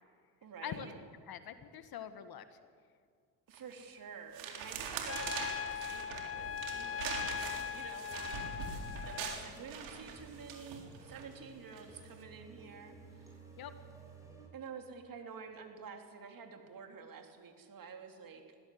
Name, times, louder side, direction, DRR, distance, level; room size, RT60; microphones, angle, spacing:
voice 1, 0.4-1.0 3.5-13.4 14.5-18.4, right 6 dB, 45° right, 4 dB, 3.4 m, -50 dB
voice 2, 1.3-2.6 8.5-8.8 13.6-13.7, left 9 dB, 50° left, 10 dB, 1.7 m, -45 dB
sound 1, 3.5-3.8 4.3-11.2 11.7-12.0, right 6 dB, 65° right, 3.9 m, -43 dB
Trumpet, 5.1-9.4, left 9 dB, 30° left, 1.0 m, -40 dB
sound 2, 6.2-14.5, right 3 dB, 5° right, 7.1 m, -56 dB
20.5 x 16.0 x 8.0 m, 2.1 s
hypercardioid pair, 60°, 48 cm